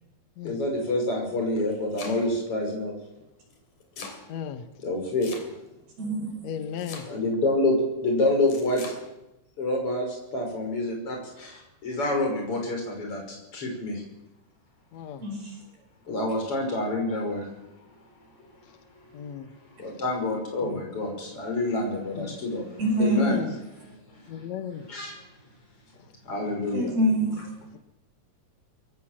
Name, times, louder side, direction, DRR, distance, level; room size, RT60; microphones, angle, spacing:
voice 1, 0.4-2.9 4.8-5.3 7.1-7.8 8.0-8.8 9.6-14.0 16.1-17.5 19.8-22.6 23.0-23.4 23.8-24.4 24.8-25.2 26.2-26.9, left 2 dB, 30° left, 1 dB, 6.5 m, -27 dB
Domestic sounds home sounds, 1.4-2.5 3.5-4.2 5.2-5.8 6.8-7.4 8.5-9.0, left 4 dB, 50° left, 4.3 m, -41 dB
voice 2, 4.3-4.6 6.4-7.1 14.9-15.2 19.1-19.5 20.6-20.8 22.2-22.4 23.1-23.5 24.3-24.8, left 9 dB, 70° left, 9 dB, 1.6 m, -35 dB
voice 3, 6.0-6.3 15.2-15.6 22.8-23.4 26.7-27.5, right 1 dB, 65° right, 1 dB, 6.8 m, -25 dB
22.5 x 16.5 x 7.5 m, 0.93 s
omnidirectional pair, 4.8 m